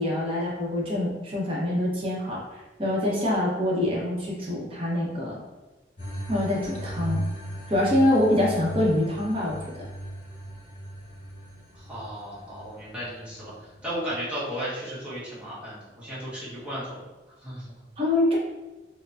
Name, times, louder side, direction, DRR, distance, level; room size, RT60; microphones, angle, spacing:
voice 1, 0.0-2.4 2.8-5.4 6.3-7.2 7.7-9.7 18.0-18.4, left 1 dB, 30° right, -4 dB, 1.0 m, -25 dB
sound 1, 6.0-14.0, right 1 dB, 45° left, 1.4 m, -37 dB
voice 2, 11.7-17.0 17.4-17.8, equal, 5° right, -10 dB, 1.4 m, -35 dB
4.5 x 2.3 x 2.5 m, 1.2 s
head